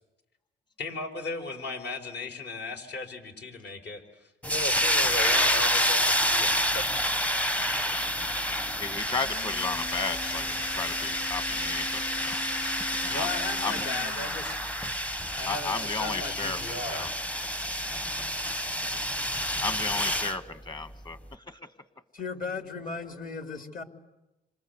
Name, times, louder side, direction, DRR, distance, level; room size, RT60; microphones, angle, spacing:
voice 1, 0.8-6.9 13.0-14.6 15.3-17.4, left 2 dB, 60° left, 5 dB, 4.7 m, -36 dB
sound 1, 4.4-20.4, equal, 5° left, 0.9 m, -28 dB
sound 2, 8.8-14.7, left 6 dB, 85° left, 1.2 m, -41 dB
voice 2, 8.8-12.4 13.0-13.3 13.6-13.9 15.5-17.1 19.6-21.6, left 4 dB, 20° left, 11 dB, 1.7 m, -34 dB
voice 3, 22.1-23.8, left 4 dB, 45° left, 6 dB, 2.9 m, -36 dB
27.5 x 26.5 x 8.1 m, 1.0 s
cardioid pair, 90°, 20 cm